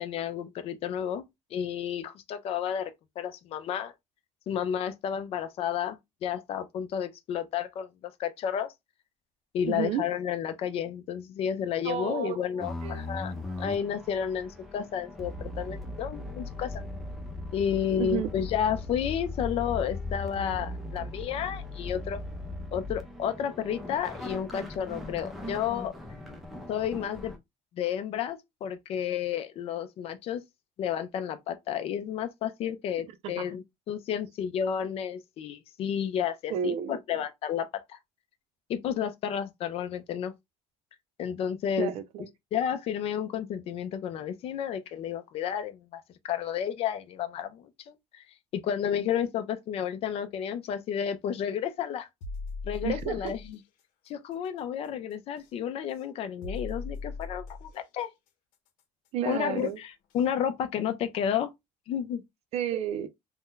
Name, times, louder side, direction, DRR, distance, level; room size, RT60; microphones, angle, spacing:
voice 1, 0.0-3.9 4.5-8.7 9.5-16.8 17.5-22.2 22.7-25.9 26.7-27.3 27.7-30.4 30.8-38.0 38.7-40.3 41.2-41.9 42.5-48.2 48.5-52.1 52.6-53.6 54.1-58.1 59.2-61.5 61.9-62.2, left 9 dB, 45° left, 0.5 m, -31 dB
voice 2, 9.6-10.0 11.8-13.0 18.0-18.3 33.2-33.5 36.5-37.0 41.8-42.3 52.8-53.3 59.1-59.8 62.5-63.1, right 10 dB, 50° right, 0.4 m, -32 dB
sound 1, 12.6-27.4, left 2 dB, ahead, 0.6 m, -38 dB
sound 2, 52.2-53.5 55.4-55.5 56.4-57.8 59.6-59.7 60.2-60.3, left 3 dB, 80° left, 0.8 m, -38 dB
2.6 x 2.1 x 3.7 m
cardioid pair, 165°, 13 cm